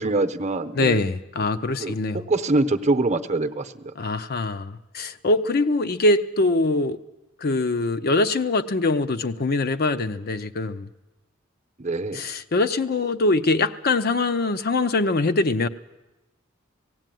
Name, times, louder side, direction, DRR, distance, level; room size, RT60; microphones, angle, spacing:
voice 1, 0.0-1.0 1.8-3.9 11.8-12.2, right 2 dB, 35° right, 9 dB, 0.9 m, -24 dB
voice 2, 0.7-2.3 4.0-7.0 7.4-10.9 12.1-15.7, left 2 dB, 50° left, 10 dB, 0.6 m, -23 dB
17.5 x 16.5 x 9.2 m, 1.0 s
head